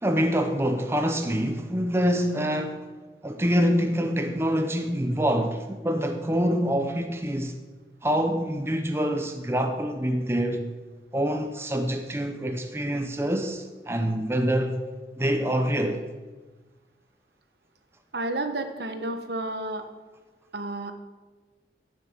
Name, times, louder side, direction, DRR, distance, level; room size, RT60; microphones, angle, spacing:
voice 1, 0.0-2.8 3.2-7.5 8.0-10.7 11.1-14.8 15.2-16.1, equal, 15° right, 0.8 m, -26 dB
voice 2, 18.1-19.8 20.5-20.9, right 2 dB, 70° right, 1.3 m, -31 dB
11.0 x 10.0 x 7.4 m
head